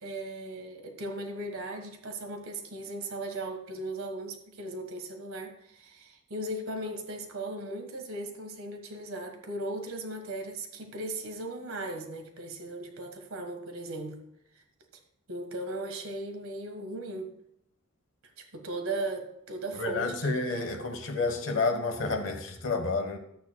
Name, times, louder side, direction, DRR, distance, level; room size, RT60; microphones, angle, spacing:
voice 1, 0.0-14.2 14.5-14.6 15.3-17.4 18.4-20.4 20.6-20.7, right 2 dB, 75° right, 5 dB, 1.6 m, -37 dB
voice 2, 19.7-23.2, left 3 dB, 60° left, 4 dB, 1.3 m, -30 dB
13.5 x 8.8 x 2.3 m, 0.75 s
head